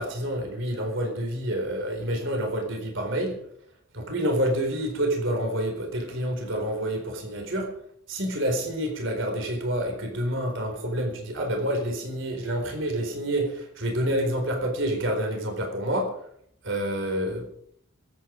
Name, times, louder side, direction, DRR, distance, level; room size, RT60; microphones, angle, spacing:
voice 1, 0.0-3.4 3.9-7.7 8.1-16.1 16.6-17.5, right 1 dB, 60° right, 3 dB, 4.2 m, -28 dB
22.5 x 9.4 x 5.1 m, 0.68 s
head